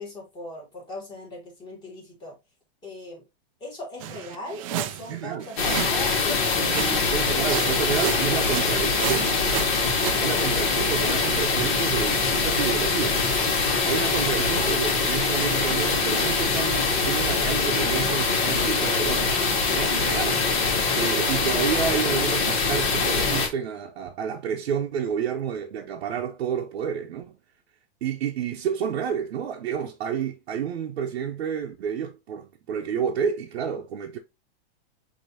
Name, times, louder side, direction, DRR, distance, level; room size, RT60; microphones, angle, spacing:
voice 1, 0.0-2.4 2.8-3.2 3.6-7.0, left 1 dB, 15° left, 2.2 m, -38 dB
sound 1, 4.0-6.1 6.6-7.1 7.4-10.2, right 12 dB, 35° right, 0.4 m, -33 dB
voice 2, 5.1-5.5 6.7-9.7 10.2-13.2 13.8-19.4 19.7-20.4 21.0-27.4 28.0-34.2, right 8 dB, 85° right, 0.8 m, -30 dB
sound 2, 5.6-23.5, left 4 dB, 50° left, 1.9 m, -23 dB
6.3 x 2.9 x 2.8 m
supercardioid pair, 155°, 31 cm